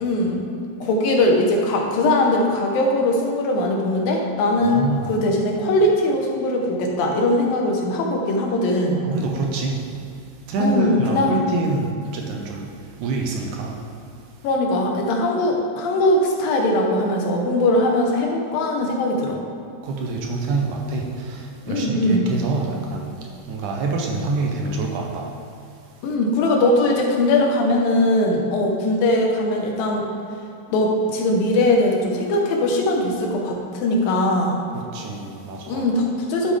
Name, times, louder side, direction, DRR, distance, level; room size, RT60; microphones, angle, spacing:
voice 1, 0.0-0.5 0.8-9.0 10.6-11.4 14.4-19.4 21.7-22.3 26.0-30.1 30.7-34.6 35.7-36.6, left 1 dB, 90° left, 0 dB, 2.9 m, -20 dB
voice 2, 4.6-5.1 9.1-9.9 10.5-12.7 13.0-13.7 19.8-23.1 23.4-25.3 34.9-35.8, right 3 dB, 75° right, 0 dB, 2.1 m, -26 dB
11.0 x 7.7 x 3.3 m, 2.7 s
omnidirectional pair, 4.0 m